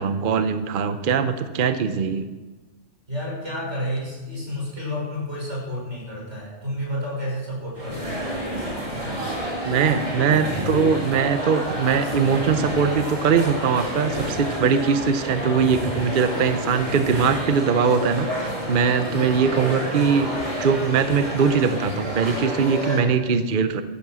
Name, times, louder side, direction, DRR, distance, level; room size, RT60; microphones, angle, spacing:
voice 1, 0.0-2.2 9.6-20.3 20.6-23.8, right 6 dB, 50° right, 10 dB, 0.9 m, -21 dB
voice 2, 3.1-8.4, left 1 dB, 70° right, -3 dB, 6.3 m, -30 dB
sound 1, 7.7-23.0, equal, 30° right, 3.4 m, -29 dB
14.0 x 12.0 x 6.2 m, 1.2 s
omnidirectional pair, 1.2 m